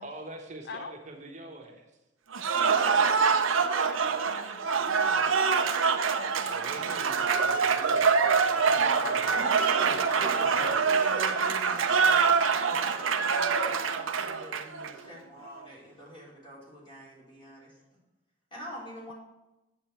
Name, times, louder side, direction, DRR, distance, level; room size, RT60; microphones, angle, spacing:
voice 1, 0.0-1.9 6.2-9.4 9.8-10.8, right 2 dB, 35° right, 2 dB, 1.2 m, -44 dB
Cheering / Applause, 2.3-14.9, right 5 dB, 90° right, 0.7 m, -25 dB
voice 2, 2.7-7.1 8.8-9.5, left 6 dB, 55° left, 9 dB, 0.4 m, -44 dB
voice 3, 9.3-17.7 18.5-19.1, equal, 25° left, -5 dB, 3.6 m, -43 dB
8.5 x 7.8 x 4.5 m, 1.0 s
head